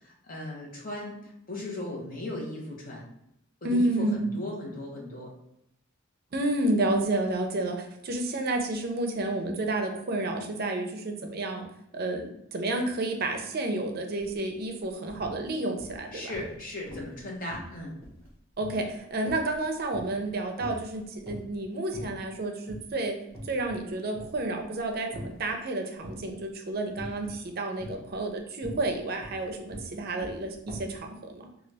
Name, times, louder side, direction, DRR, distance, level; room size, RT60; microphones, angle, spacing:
voice 1, 0.0-3.1 3.6-5.3 16.1-18.0, left 1 dB, 45° left, -2 dB, 0.9 m, -37 dB
voice 2, 3.6-4.3 6.3-11.7 11.9-12.3 12.5-16.3 18.6-23.2 23.5-31.5, right 2 dB, 45° right, 4 dB, 0.5 m, -30 dB
sound 1, 14.2-14.4 14.7-15.4 15.8-16.6 16.9-17.2 17.5-20.3 20.6-21.6 21.9-22.4 22.7-22.9 23.3-23.9 24.1-25.5 26.0-26.4 27.0-27.4 27.8-31.0, equal, 10° left, 1.3 m, -43 dB
3.8 x 2.4 x 3.3 m, 0.78 s
head